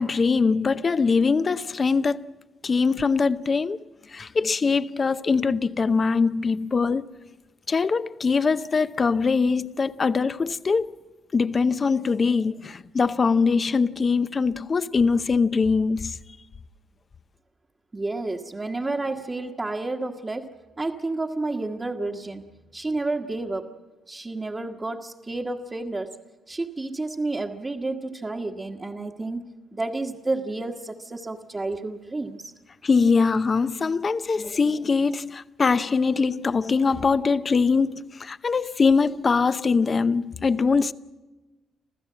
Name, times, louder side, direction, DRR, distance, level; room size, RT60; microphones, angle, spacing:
voice 1, 0.0-2.3 2.6-3.8 4.1-7.1 7.7-10.9 11.3-16.2 32.8-40.9, left 4 dB, 35° left, 0.7 m, -22 dB
voice 2, 17.9-23.8 24.1-26.2 26.5-32.5, right 2 dB, 25° right, 1.4 m, -30 dB
27.5 x 15.0 x 7.5 m
cardioid pair, 90°, 0 cm